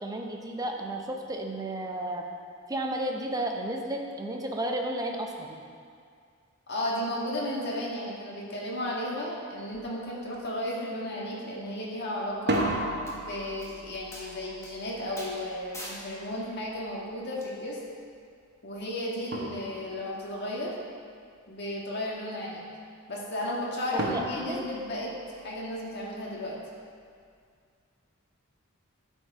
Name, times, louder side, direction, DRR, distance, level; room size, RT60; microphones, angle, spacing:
voice 1, 0.0-2.2 2.7-5.6 23.9-24.7, right 1 dB, 15° right, 2 dB, 0.7 m, -33 dB
voice 2, 6.7-12.6 13.1-17.8 18.6-20.7 21.5-22.6 23.1-25.1 25.4-26.6, left 1 dB, 50° left, -4 dB, 1.6 m, -34 dB
sound 1, 9.7-9.9 10.3-10.8 12.3-17.1 18.8-18.9 19.3-20.2 24.0-25.7, right 1 dB, 50° right, 1.0 m, -35 dB
sound 2, 12.5-12.6 13.1-13.2 13.6-13.7 14.1-14.3 14.6-14.7 15.2-15.3 15.7-16.0 17.4-17.5, left 1 dB, 15° left, 1.3 m, -41 dB
11.5 x 4.6 x 4.7 m, 2.2 s
head